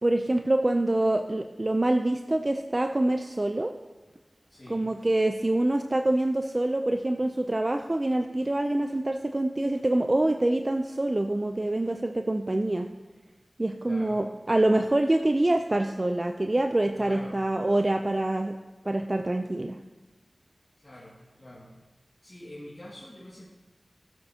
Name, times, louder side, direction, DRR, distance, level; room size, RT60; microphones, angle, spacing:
voice 1, 0.0-3.7 4.7-12.9 13.6-18.5 18.8-19.8, right 1 dB, 35° right, 5 dB, 0.5 m, -25 dB
voice 2, 4.5-4.8 13.8-14.2 16.9-17.4 20.8-21.7 22.2-23.5, left 1 dB, 35° left, -7 dB, 2.1 m, -45 dB
15.5 x 7.8 x 2.8 m, 1.2 s
cardioid pair, 40°, 0 cm